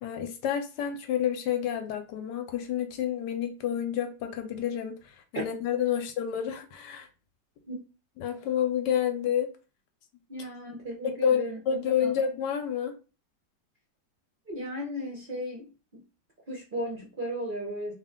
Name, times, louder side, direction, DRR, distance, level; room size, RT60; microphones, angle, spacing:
voice 1, 0.0-4.9 5.3-7.1 8.2-9.5 11.0-12.9, left 9 dB, 75° left, 1.1 m, -29 dB
voice 2, 10.3-11.6 12.0-12.1 14.5-16.0 16.5-17.9, equal, 45° right, 0.6 m, -35 dB
3.1 x 2.5 x 3.6 m
omnidirectional pair, 2.0 m